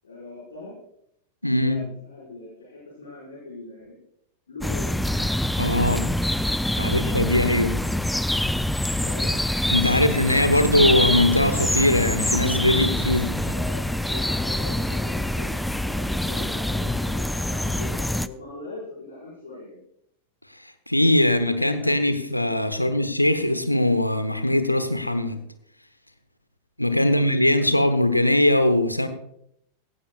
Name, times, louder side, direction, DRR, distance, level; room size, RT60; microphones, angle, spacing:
voice 1, 0.0-0.7 1.5-4.0 4.5-4.9 6.7-7.0 8.9-9.4 9.9-10.8 13.1-19.8 21.5-21.9 22.7-23.1 27.0-27.8, left 2 dB, 70° left, -6 dB, 5.0 m, -40 dB
voice 2, 1.4-1.8 5.6-6.1 6.8-7.7 9.7-13.5 20.6-25.4 26.8-29.1, left 1 dB, 85° left, 10 dB, 1.0 m, -21 dB
sound 1, 4.6-18.3, left 1 dB, 5° left, 0.4 m, -25 dB
16.5 x 16.0 x 2.4 m, 0.74 s
figure-of-eight pair, 90°, 0 cm